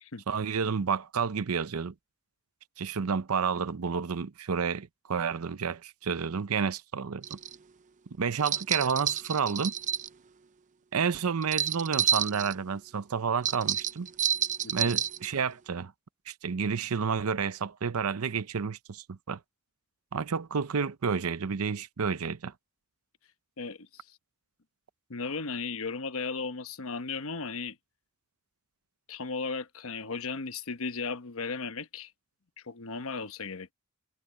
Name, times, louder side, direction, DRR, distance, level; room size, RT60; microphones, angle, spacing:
voice 1, 0.3-1.9 2.8-7.4 8.2-9.7 10.9-14.1 14.7-15.9 16.3-19.4 20.1-22.5, right 6 dB, 80° right, 0.6 m, -30 dB
sound 1, 7.2-7.5 8.4-10.1 11.4-12.5 13.4-15.3, right 9 dB, 35° right, 0.5 m, -29 dB
voice 2, 14.6-14.9 23.6-24.2 25.1-27.8 29.1-32.1 32.6-33.7, left 4 dB, 70° left, 1.1 m, -36 dB
head